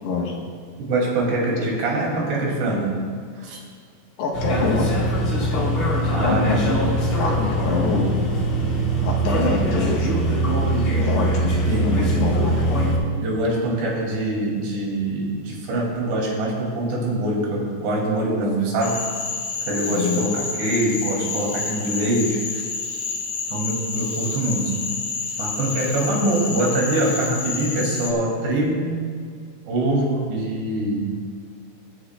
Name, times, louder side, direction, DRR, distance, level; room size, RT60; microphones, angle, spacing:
voice 1, 0.0-0.3 1.6-1.7 4.2-4.9 5.5-5.7 6.2-8.1 9.0-10.3 11.0-11.6 11.8-12.4 19.9-20.3, left 4 dB, 75° left, -1 dB, 3.0 m, -25 dB
voice 2, 0.8-2.9 3.4-3.6 6.1-6.7 11.7-11.9 13.2-19.0 19.7-22.6 23.5-24.7 25.4-29.0 29.7-31.0, right 1 dB, 70° right, -3 dB, 4.5 m, -24 dB
sound 1, 4.3-13.0, right 1 dB, 45° left, 1.6 m, -22 dB
Cricket / Frog, 18.8-28.1, left 4 dB, 90° left, 1.6 m, -29 dB
20.5 x 10.5 x 2.2 m, 2.1 s
omnidirectional pair, 5.2 m